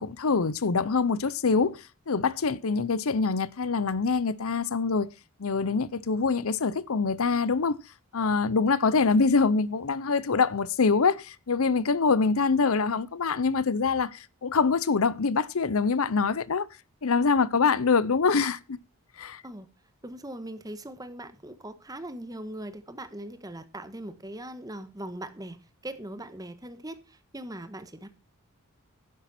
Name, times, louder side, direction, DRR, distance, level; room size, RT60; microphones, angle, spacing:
voice 1, 0.0-5.1 5.4-7.8 8.1-16.7 17.0-18.8 19.2-19.4, left 4 dB, 70° left, 0.7 m, -25 dB
voice 2, 20.0-25.6 25.8-28.1, right 1 dB, 15° right, 1.3 m, -40 dB
11.5 x 10.0 x 4.3 m
head